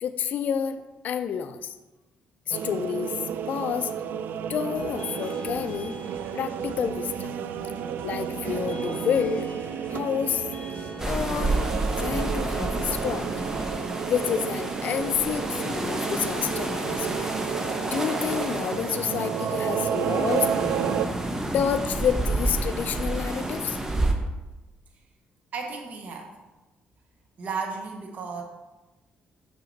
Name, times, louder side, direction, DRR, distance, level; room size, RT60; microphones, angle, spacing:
voice 1, 0.0-1.8 2.5-3.2 3.5-3.9 4.5-6.0 6.3-7.4 8.0-9.5 9.9-10.5 11.1-13.3 14.1-17.3 17.9-20.5 21.5-23.8, left 8 dB, 55° left, 9 dB, 0.4 m, -29 dB
sound 1, 2.5-21.1, right 8 dB, 70° right, 0.3 m, -32 dB
sound 2, 4.8-12.1, left 3 dB, 35° left, 1.2 m, -43 dB
sound 3, 11.0-24.1, right 2 dB, 15° right, 0.8 m, -30 dB
voice 2, 25.5-26.3 27.4-28.4, right 5 dB, 50° right, 3 dB, 0.9 m, -34 dB
6.1 x 5.8 x 3.9 m, 1.1 s
cardioid pair, 130°, 3 cm